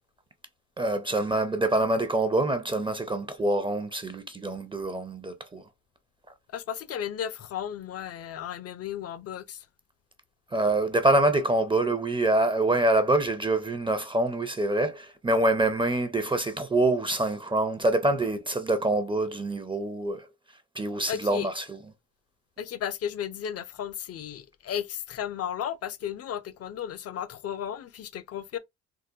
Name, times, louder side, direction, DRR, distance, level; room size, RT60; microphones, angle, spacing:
voice 1, 0.8-5.6 10.5-20.3 20.7-21.8, right 2 dB, 15° right, 0.5 m, -25 dB
voice 2, 6.5-9.6 21.1-21.5 22.6-28.6, left 9 dB, 55° left, 0.5 m, -34 dB
3.7 x 2.1 x 2.6 m
cardioid pair, 90°, 30 cm